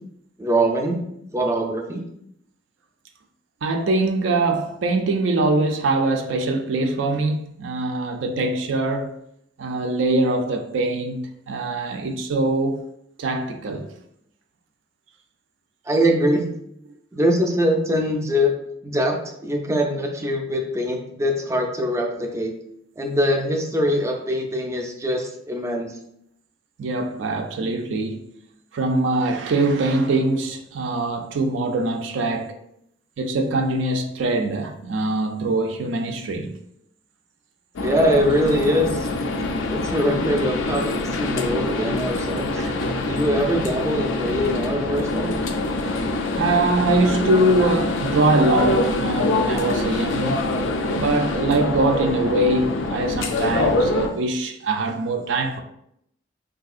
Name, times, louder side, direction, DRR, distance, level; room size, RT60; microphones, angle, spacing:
voice 1, 0.4-1.0 1.3-2.0 15.9-16.4 17.1-18.5 18.8-22.5 23.0-25.9 37.8-39.1 39.7-42.4 43.0-45.3, equal, 15° right, 0.4 m, -23 dB
voice 2, 3.6-9.2 9.6-12.8 13.2-13.9 26.8-28.2 28.7-32.5 33.2-36.5 42.6-43.0 46.3-50.5 50.9-55.6, right 2 dB, 85° right, 0.4 m, -23 dB
sound 1, 37.8-54.1, left 2 dB, 85° left, 0.4 m, -24 dB
3.5 x 2.7 x 2.4 m
head